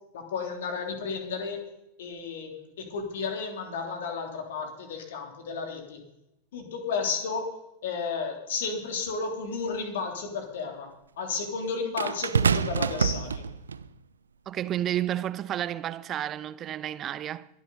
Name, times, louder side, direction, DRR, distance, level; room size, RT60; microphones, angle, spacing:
voice 1, 0.1-1.7 2.0-6.0 6.5-7.5 7.8-10.9 11.2-13.5, left 5 dB, 60° left, 3.2 m, -33 dB
sound 1, 9.1-9.2 12.0-13.9 14.8-15.0, right 6 dB, 70° right, 0.5 m, -26 dB
voice 2, 14.5-17.5, right 11 dB, 30° right, 0.6 m, -31 dB
22.5 x 10.5 x 4.1 m
figure-of-eight pair, 90°, 0 cm